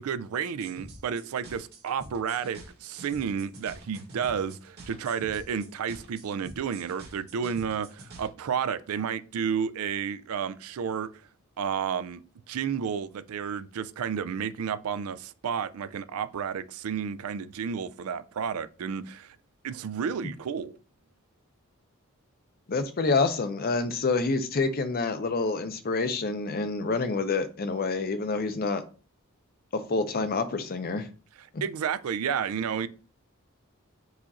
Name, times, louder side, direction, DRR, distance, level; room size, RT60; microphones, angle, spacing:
voice 1, 0.0-11.1 11.6-12.2 12.5-19.4 19.6-20.7 31.6-32.9, right 7 dB, 85° right, 0.4 m, -31 dB
sound 1, 0.6-8.3, right 2 dB, 50° right, 1.2 m, -47 dB
voice 2, 22.7-28.8 29.7-31.1, left 3 dB, 45° left, 0.6 m, -27 dB
4.8 x 2.5 x 4.1 m
head